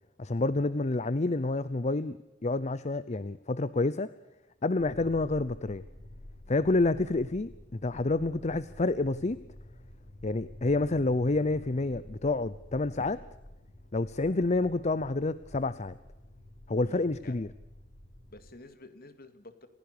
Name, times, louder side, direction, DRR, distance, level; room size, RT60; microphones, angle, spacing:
voice 1, 0.2-2.2 2.4-4.1 4.6-5.8 6.5-9.4 10.2-13.2 13.9-16.0 16.7-17.5, left 2 dB, 40° left, 16 dB, 0.7 m, -28 dB
sound 1, 4.8-18.5, left 1 dB, 80° left, 6.2 m, -50 dB
voice 2, 16.8-17.3 18.3-19.7, left 2 dB, 55° left, 11 dB, 2.3 m, -51 dB
28.5 x 16.0 x 6.8 m, 0.99 s
head